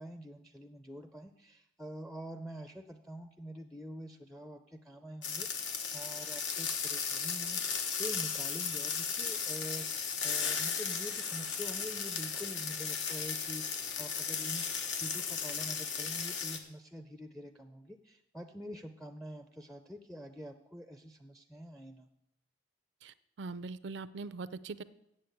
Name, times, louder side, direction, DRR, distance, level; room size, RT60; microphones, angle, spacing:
voice 1, 0.0-5.5 5.9-22.1, equal, ahead, 6 dB, 0.5 m, -46 dB
sound 1, 5.2-16.6, left 6 dB, 80° left, 1.1 m, -35 dB
voice 2, 23.0-24.8, right 3 dB, 75° right, 16 dB, 0.5 m, -42 dB
8.3 x 7.7 x 7.8 m, 0.82 s
head